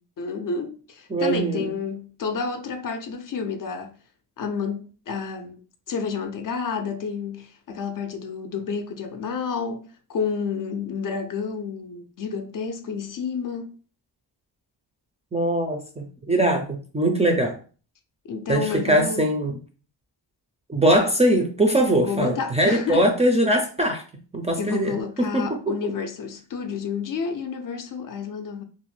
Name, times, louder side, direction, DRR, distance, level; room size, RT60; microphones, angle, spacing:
voice 1, 0.2-4.0 4.4-5.6 5.9-13.7 18.2-19.3 21.9-23.1 24.6-28.6, left 5 dB, 50° left, 0.4 m, -30 dB
voice 2, 1.1-1.7 15.3-17.6 18.5-19.6 20.7-24.0 24.3-25.8, right 1 dB, 15° right, 0.3 m, -22 dB
2.6 x 2.1 x 3.1 m
cardioid pair, 105°, 44 cm